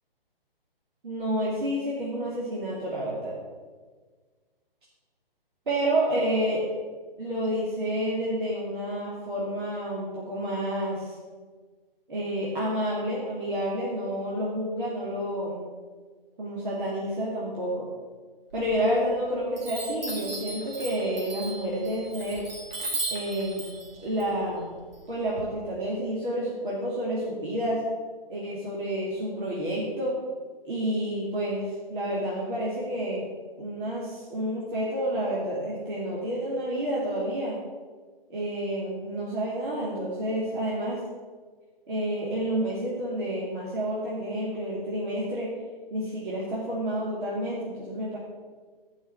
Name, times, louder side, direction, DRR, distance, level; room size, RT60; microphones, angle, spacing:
voice 1, 1.0-3.3 5.7-6.6 7.2-11.1 12.1-15.6 16.4-17.8 18.5-22.4 23.1-23.7 24.0-24.7 25.1-27.8 28.3-30.1 30.6-31.6 31.9-33.3 33.6-37.6 38.3-41.0 41.9-45.5 45.9-48.2, right 1 dB, 55° right, -6 dB, 2.9 m, -29 dB
Chime, 18.5-19.2 19.6-25.4, right 2 dB, 70° right, 3.2 m, -36 dB
10.0 x 5.8 x 7.0 m, 1.5 s
hypercardioid pair, 155°, 30 cm